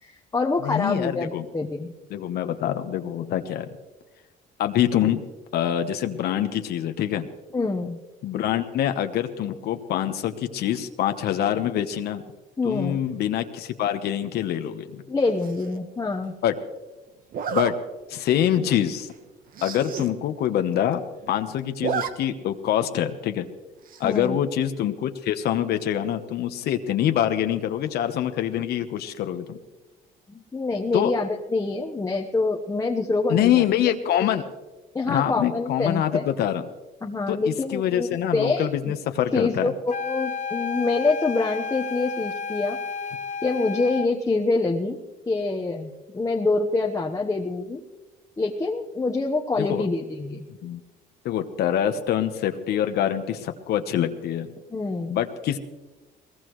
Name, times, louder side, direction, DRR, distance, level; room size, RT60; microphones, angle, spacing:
voice 1, 0.0-1.9 7.5-8.0 12.6-13.0 15.1-16.3 24.0-24.4 30.3-33.6 34.2-34.3 34.9-36.3 37.0-38.7 39.3-42.8 43.4-45.0 45.3-47.8 48.4-50.4 54.7-55.2, left 3 dB, 20° left, 0 dB, 1.1 m, -26 dB
voice 2, 0.6-1.5 2.1-3.7 4.6-5.2 5.5-7.3 8.2-12.2 12.6-15.0 16.4-16.6 17.5-17.8 18.1-19.1 19.6-23.5 24.0-29.6 30.9-31.1 33.3-34.4 35.0-36.6 37.3-39.7 49.7-49.9 50.6-50.8 51.2-54.5 55.1-55.6, left 10 dB, 70° left, 7 dB, 1.1 m, -25 dB
Zipper (clothing), 15.4-15.8 17.3-17.7 18.3-18.5 18.8-18.9 19.1-19.2 19.5-20.1 20.5-20.6 20.7-21.3 21.6-22.1 22.4-22.5 23.9-24.3, right 8 dB, 60° right, 1.2 m, -31 dB
sound 1, 39.9-44.1, left 6 dB, 45° left, 1.0 m, -32 dB
22.0 x 18.5 x 3.2 m, 1.1 s
cardioid pair, 110°, 17 cm